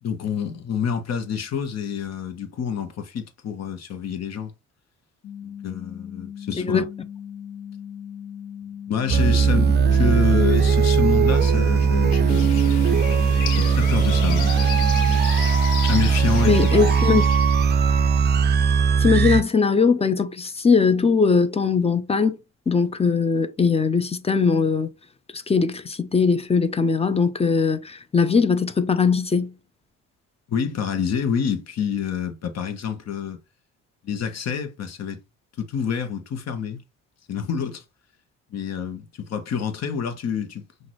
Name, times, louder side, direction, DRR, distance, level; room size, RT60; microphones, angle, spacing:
voice 1, 0.0-4.5 5.4-6.8 8.9-13.0 13.5-14.9 15.9-16.7 30.5-33.4 34.0-35.2 35.6-36.8 37.3-37.8 38.5-40.7, left 7 dB, 60° left, 1.2 m, -27 dB
sound 1, 5.2-15.2, left 8 dB, 35° left, 1.6 m, -38 dB
sound 2, 9.1-19.4, right 6 dB, 35° right, 0.4 m, -19 dB
sound 3, 12.3-17.7, left 9 dB, 85° left, 0.8 m, -34 dB
voice 2, 16.4-17.2 19.0-22.4 22.7-24.9 25.3-29.5, left 5 dB, 20° left, 0.6 m, -20 dB
5.8 x 2.6 x 3.2 m
cardioid pair, 90°, 30 cm